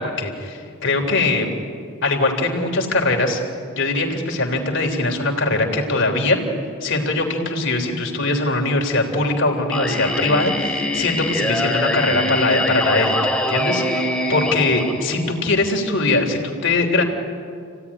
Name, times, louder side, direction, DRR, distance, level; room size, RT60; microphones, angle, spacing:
voice 1, 0.0-1.5 2.0-3.4 3.7-6.4 6.8-17.0, left 2 dB, 55° left, 2 dB, 3.5 m, -21 dB
Singing, 9.7-15.7, left 1 dB, 5° left, 2.2 m, -23 dB
29.0 x 17.0 x 9.9 m, 2.3 s
head